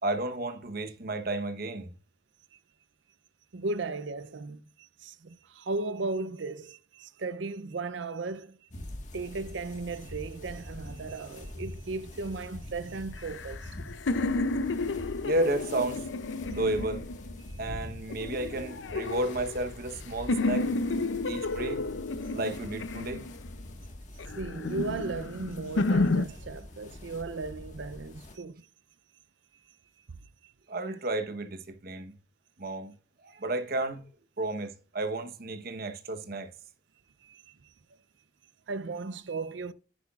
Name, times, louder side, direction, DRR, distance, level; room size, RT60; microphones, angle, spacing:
voice 1, 0.0-1.9 15.2-16.1 16.5-17.1 17.6-20.7 21.2-21.8 22.3-23.2 30.7-32.1 32.6-32.9 33.2-34.1 34.4-36.5, right 2 dB, 50° right, 1.1 m, -32 dB
voice 2, 3.5-8.5 9.1-13.7 17.5-17.6 24.4-28.7 30.4-30.5 37.2-37.6 38.7-39.7, right 3 dB, 70° right, 0.6 m, -36 dB
sound 1, 8.7-28.4, left 1 dB, 40° left, 1.6 m, -44 dB
sound 2, 13.2-17.5 18.1-20.0 20.3-23.6 24.2-26.3, left 3 dB, 75° left, 0.6 m, -31 dB
10.0 x 10.0 x 2.4 m
head